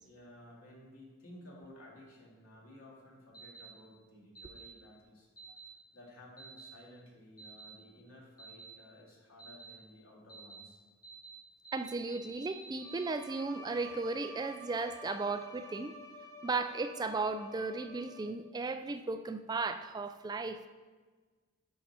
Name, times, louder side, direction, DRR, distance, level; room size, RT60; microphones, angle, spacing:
voice 1, 0.0-5.3 5.9-10.8, left 1 dB, 85° left, -4 dB, 2.5 m, -55 dB
sound 1, 3.3-3.7 4.4-4.7 5.4-5.7 6.4-6.7 7.4-7.7 8.4-8.7 9.4-9.7 10.3-10.6 11.0-11.3 11.6-13.0, right 3 dB, 45° left, 2.8 m, -51 dB
voice 2, 11.7-15.9 16.4-20.7, right 3 dB, 20° right, 9 dB, 0.3 m, -35 dB
Bowed string instrument, 12.8-18.6, equal, 15° left, 0.7 m, -50 dB
9.4 x 5.4 x 4.3 m, 1.4 s
head